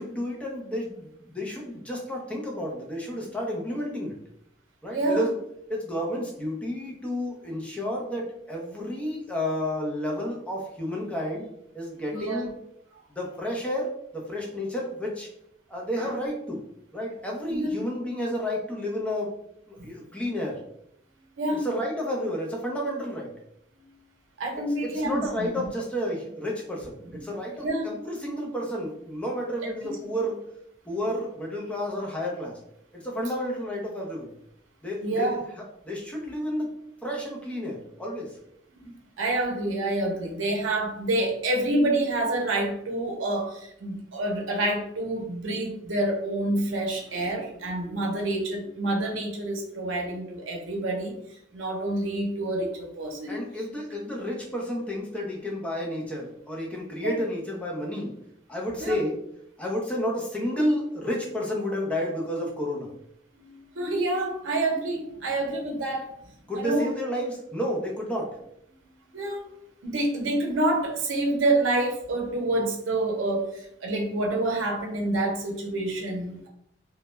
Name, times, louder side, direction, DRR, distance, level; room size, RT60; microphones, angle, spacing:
voice 1, 0.0-4.1 4.8-5.3 5.7-11.5 11.7-12.5 13.1-15.3 15.7-16.6 16.9-19.3 19.7-20.6 21.6-23.3 24.8-30.4 30.9-32.6 32.9-34.3 34.8-35.4 35.8-38.4 53.3-58.1 58.5-59.2 59.6-62.9 66.5-68.4, equal, 5° left, -2 dB, 0.5 m, -31 dB
voice 2, 4.9-5.2 12.1-12.5 12.9-13.0 16.0-16.2 17.5-17.8 19.8-19.9 21.4-21.7 23.8-23.9 24.4-25.7 27.1-27.2 27.5-27.9 28.2-28.3 29.6-29.7 33.2-33.3 35.0-35.4 38.8-53.4 57.0-57.2 58.8-59.0 63.3-66.1 66.5-66.9 69.1-69.4 69.8-76.5, right 2 dB, 85° right, 1 dB, 0.6 m, -28 dB
2.2 x 2.1 x 3.0 m, 0.74 s
head